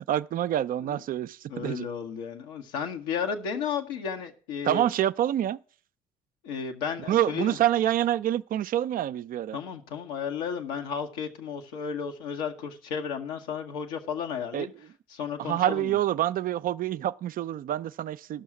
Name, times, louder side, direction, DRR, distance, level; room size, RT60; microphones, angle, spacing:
voice 1, 0.1-1.9 4.6-5.6 7.1-9.6 14.5-14.7 15.4-18.4, right 12 dB, 45° right, 0.4 m, -27 dB
voice 2, 1.5-4.8 6.4-7.6 9.5-14.7 15.1-16.0, left 6 dB, 75° left, 1.0 m, -33 dB
13.0 x 6.2 x 5.9 m
figure-of-eight pair, 45°, 20 cm